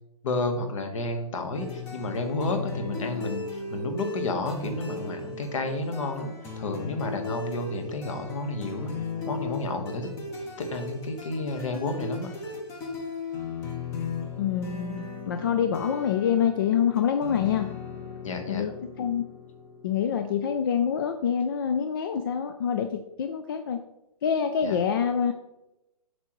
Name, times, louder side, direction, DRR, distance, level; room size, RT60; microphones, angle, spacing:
voice 1, 0.2-8.9 9.2-10.3 10.6-12.3 18.2-18.7 24.6-24.8, left 2 dB, 55° left, 6 dB, 1.5 m, -31 dB
sound 1, 1.5-20.9, left 4 dB, 15° left, 0.8 m, -37 dB
voice 2, 14.4-17.7 18.5-19.2 19.8-23.8 24.2-25.3, left 8 dB, 35° left, 7 dB, 0.4 m, -26 dB
7.9 x 6.6 x 3.1 m, 0.93 s
hypercardioid pair, 160°, 20 cm